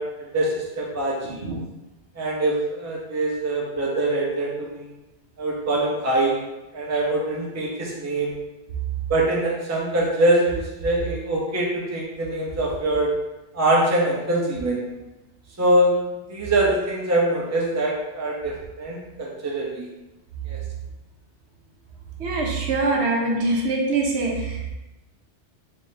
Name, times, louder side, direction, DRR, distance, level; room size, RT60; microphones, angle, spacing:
voice 1, 0.0-1.4 2.2-4.9 5.4-6.4 6.7-8.3 9.1-13.1 13.5-14.9 15.6-15.9 16.3-19.9 20.5-20.6, right 1 dB, 20° right, -3 dB, 0.5 m, -23 dB
voice 2, 22.2-24.7, right 2 dB, 70° right, -1 dB, 1.0 m, -23 dB
3.7 x 3.6 x 2.7 m, 1.0 s
omnidirectional pair, 1.2 m